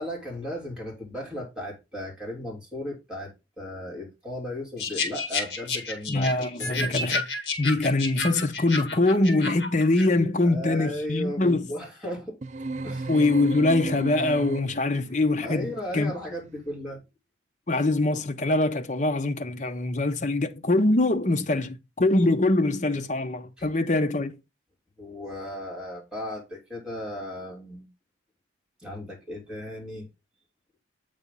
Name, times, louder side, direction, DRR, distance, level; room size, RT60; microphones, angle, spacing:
voice 1, 0.0-6.3 6.6-7.0 10.4-12.4 12.8-13.1 15.4-17.0 23.6-23.7 25.0-27.9 28.8-30.1, left 1 dB, 5° right, 2.8 m, -36 dB
sound 1, 4.8-10.1, left 3 dB, 65° left, 1.7 m, -31 dB
voice 2, 6.1-7.2 7.6-11.7 13.1-16.1 17.7-24.4, left 2 dB, 40° left, 0.7 m, -23 dB
sound 2, 12.4-15.0, right 3 dB, 35° right, 0.4 m, -34 dB
8.2 x 3.5 x 5.3 m
head